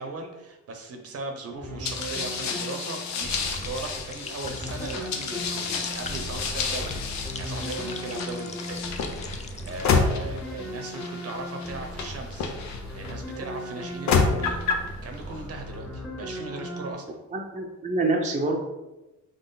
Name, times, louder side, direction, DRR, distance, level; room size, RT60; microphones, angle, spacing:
voice 1, 0.0-14.6 15.0-17.2, right 3 dB, 50° right, 4 dB, 0.9 m, -38 dB
sound 1, 1.6-16.9, equal, 5° left, 0.9 m, -37 dB
sound 2, 1.8-13.1 13.8-14.9, left 5 dB, 65° left, 0.7 m, -30 dB
sound 3, 3.1-10.0, left 5 dB, 25° left, 0.4 m, -43 dB
voice 2, 17.3-18.6, right 2 dB, 25° right, 0 dB, 0.7 m, -26 dB
4.1 x 3.1 x 3.9 m, 1.0 s
cardioid pair, 90°, 30 cm